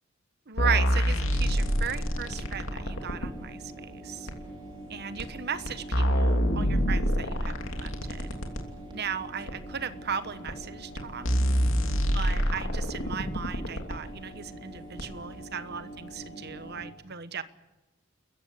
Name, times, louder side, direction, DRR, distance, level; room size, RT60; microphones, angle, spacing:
voice 1, 0.5-4.3 4.9-7.5 7.8-8.3 8.9-11.3 12.1-17.4, right 7 dB, 55° right, 13 dB, 1.1 m, -36 dB
sound 1, 0.6-3.3 4.3-4.4 5.2-5.3 5.7-8.6 9.5-9.6 10.5-10.6 11.0-11.1 11.2-14.0 15.0-15.1, equal, 70° left, 3.0 m, -26 dB
sound 2, 1.2-16.9, right 1 dB, 25° right, 4.0 m, -44 dB
29.5 x 15.0 x 8.5 m, 1.1 s
head